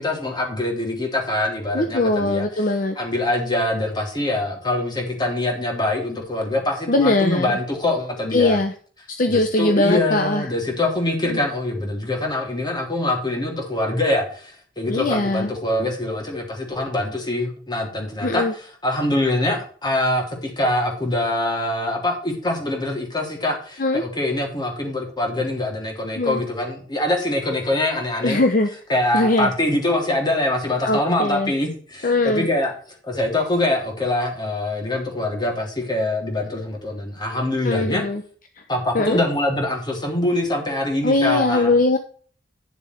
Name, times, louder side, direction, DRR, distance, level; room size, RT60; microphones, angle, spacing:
voice 1, 0.0-2.4 3.0-8.6 9.3-18.5 18.8-28.4 28.9-32.7 33.0-38.0 38.7-41.7, left 1 dB, 25° left, 1 dB, 3.3 m, -24 dB
voice 2, 1.7-3.0 6.9-7.6 8.3-8.7 9.1-10.5 11.2-11.4 14.9-15.5 18.2-18.5 23.8-24.0 26.2-26.4 28.2-28.7 29.1-29.5 30.8-31.5 32.0-32.5 37.6-38.2 38.9-39.2 41.0-42.0, left 2 dB, 50° left, 6 dB, 1.0 m, -20 dB
10.5 x 7.0 x 4.5 m, 0.43 s
head